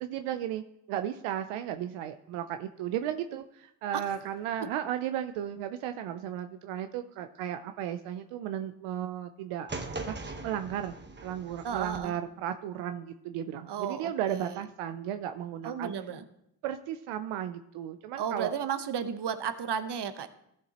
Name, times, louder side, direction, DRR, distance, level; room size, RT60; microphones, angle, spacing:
voice 1, 0.0-9.7 10.0-10.9 11.2-15.9 16.6-18.5, right 10 dB, 85° right, 9 dB, 0.6 m, -35 dB
sound 1, 9.7-12.0, right 2 dB, 20° right, 1.1 m, -40 dB
voice 2, 11.6-12.2 13.7-14.6 15.6-16.2 18.2-20.3, right 7 dB, 55° right, 11 dB, 1.0 m, -33 dB
14.0 x 6.9 x 2.9 m, 0.77 s
supercardioid pair, 50°, 49 cm